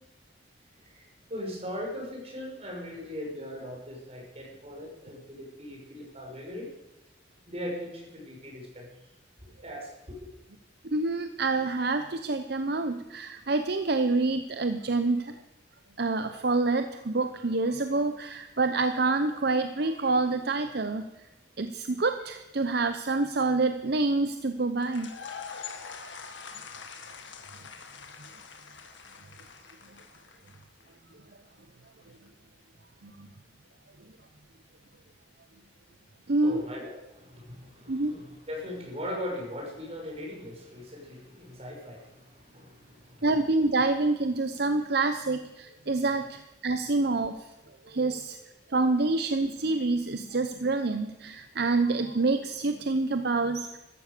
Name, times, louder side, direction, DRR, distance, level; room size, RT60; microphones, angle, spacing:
voice 1, 0.8-6.7 7.5-8.9 9.6-10.3 36.2-43.2, left 1 dB, 35° right, -2 dB, 6.1 m, -39 dB
voice 2, 10.8-15.4 16.0-21.3 21.6-25.1 33.0-33.3 36.3-36.6 37.9-38.1 43.2-47.5 47.8-48.4 48.7-53.8, right 3 dB, 60° right, 8 dB, 0.8 m, -27 dB
sound 1, 24.8-30.8, left 6 dB, 85° left, 1.8 m, -44 dB
14.5 x 14.0 x 6.8 m, 1.0 s
head